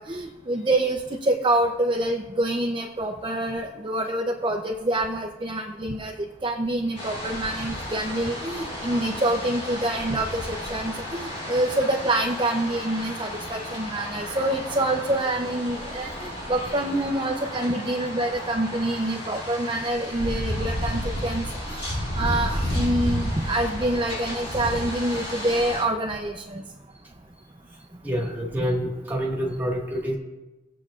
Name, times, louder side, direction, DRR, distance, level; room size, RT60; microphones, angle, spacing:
voice 1, 0.1-6.1 6.4-21.9 22.2-26.6, right 1 dB, 25° right, 1 dB, 0.6 m, -26 dB
sound 1, 7.0-25.8, equal, 35° left, 2.6 m, -32 dB
voice 2, 27.9-30.1, equal, 10° right, -3 dB, 1.7 m, -27 dB
19.5 x 7.7 x 2.5 m, 1.1 s
head